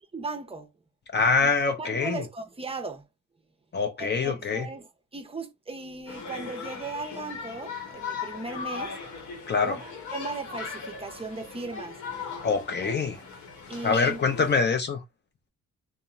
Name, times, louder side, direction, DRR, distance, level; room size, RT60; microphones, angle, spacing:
voice 1, 0.1-0.7 1.4-1.5 1.8-3.1 4.0-9.0 9.6-12.0 13.7-14.2, right 3 dB, 20° right, 0.6 m, -37 dB
voice 2, 1.1-2.2 3.7-4.7 9.5-9.8 12.4-13.2 13.8-15.0, left 4 dB, 35° left, 0.6 m, -25 dB
sound 1, 6.1-14.5, left 5 dB, 75° left, 1.0 m, -38 dB
2.9 x 2.1 x 2.4 m
cardioid pair, 90°, 30 cm